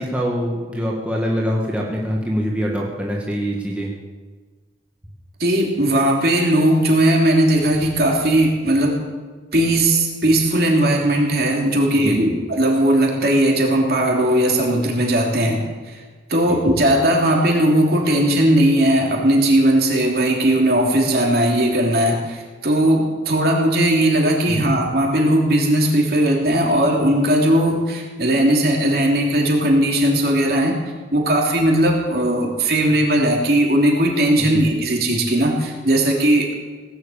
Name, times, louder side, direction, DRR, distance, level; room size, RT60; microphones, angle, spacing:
voice 1, 0.0-3.9 12.0-12.4 16.5-16.6 24.5-24.6 34.4-34.6, equal, 5° right, -2 dB, 1.8 m, -24 dB
voice 2, 5.4-9.0 9.5-16.0 16.3-30.8 31.1-36.5, right 1 dB, 55° right, -1 dB, 3.3 m, -18 dB
18.0 x 8.0 x 8.7 m, 1.5 s
head